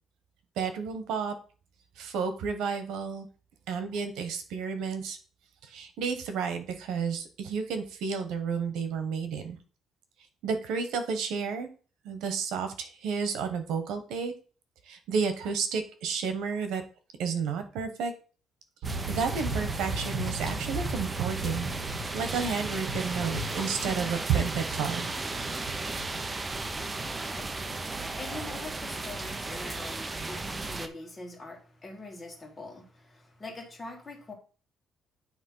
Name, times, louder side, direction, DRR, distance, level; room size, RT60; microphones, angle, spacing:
voice 1, 0.6-1.3 2.0-3.3 3.7-5.2 5.6-9.6 10.4-11.7 12.0-14.3 14.9-16.8 17.2-18.1 19.1-21.7 22.1-25.1, right 6 dB, 90° right, 8 dB, 1.3 m, -31 dB
sound 1, 18.8-30.9, right 3 dB, 15° right, 0.6 m, -35 dB
sound 2, 18.8-30.3, right 2 dB, 55° right, 2.2 m, -38 dB
voice 2, 27.0-34.3, left 2 dB, 20° left, 2 dB, 1.7 m, -44 dB
9.5 x 3.2 x 5.6 m, 0.38 s
cardioid pair, 170°, 0 cm